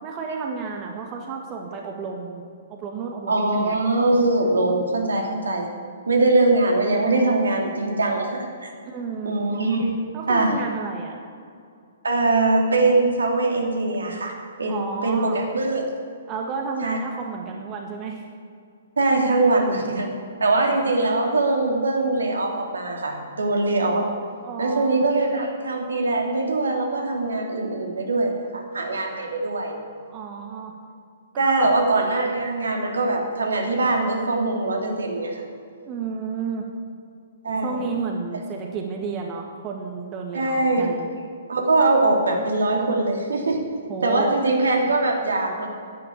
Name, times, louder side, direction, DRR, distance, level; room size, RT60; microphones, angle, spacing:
voice 1, 0.0-2.4 2.7-3.8 8.9-9.4 10.1-11.2 14.7-15.4 16.3-18.2 24.4-25.1 30.0-30.7 31.3-31.8 35.9-36.6 37.6-41.1 43.9-44.3, right 5 dB, 30° right, 2 dB, 1.7 m, -31 dB
voice 2, 3.3-5.7 6.1-8.7 9.2-9.9 10.3-10.5 12.0-15.9 16.8-17.0 19.0-20.1 20.4-24.1 24.6-29.8 31.4-35.4 37.4-37.9 40.3-40.9 41.5-43.6 44.0-45.7, right 2 dB, 70° right, 1 dB, 2.9 m, -22 dB
11.0 x 11.0 x 8.6 m, 2.3 s
figure-of-eight pair, 120°, 0 cm